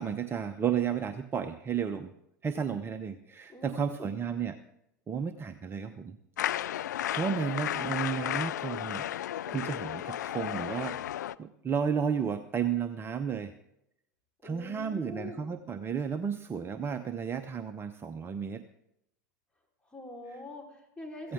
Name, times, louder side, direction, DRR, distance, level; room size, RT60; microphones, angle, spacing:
voice 1, 0.0-2.1 2.4-4.6 5.1-6.2 6.4-6.8 7.1-9.1 9.5-11.0 11.4-13.5 14.4-18.6 21.2-21.3, right 7 dB, 25° right, 9 dB, 0.8 m, -33 dB
voice 2, 3.5-4.3 14.4-15.5 19.8-21.3, left 2 dB, 10° left, -1 dB, 4.5 m, -44 dB
sound 1, 6.4-11.3, left 12 dB, 75° left, 0.4 m, -33 dB
16.5 x 15.5 x 3.8 m, 0.79 s
hypercardioid pair, 90°, 10 cm